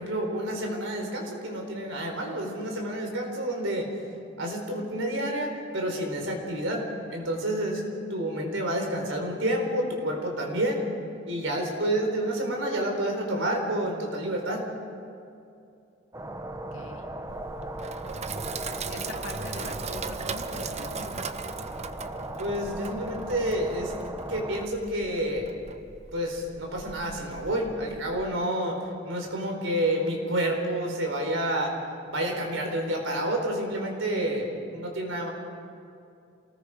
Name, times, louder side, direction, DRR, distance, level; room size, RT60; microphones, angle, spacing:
voice 1, 0.0-3.9 4.4-7.8 8.1-10.8 11.3-14.7 22.4-23.9 24.3-25.5 26.1-28.8 29.0-31.7 32.1-35.3, right 1 dB, 80° right, 1 dB, 4.3 m, -29 dB
sound 1, 16.1-24.7, right 1 dB, 15° right, 1.1 m, -38 dB
voice 2, 16.7-17.1 17.9-21.3, left 2 dB, 85° left, 3 dB, 2.3 m, -44 dB
Sink (filling or washing), 17.3-28.3, right 4 dB, 35° right, 0.8 m, -39 dB
28.0 x 19.5 x 5.1 m, 2.5 s
head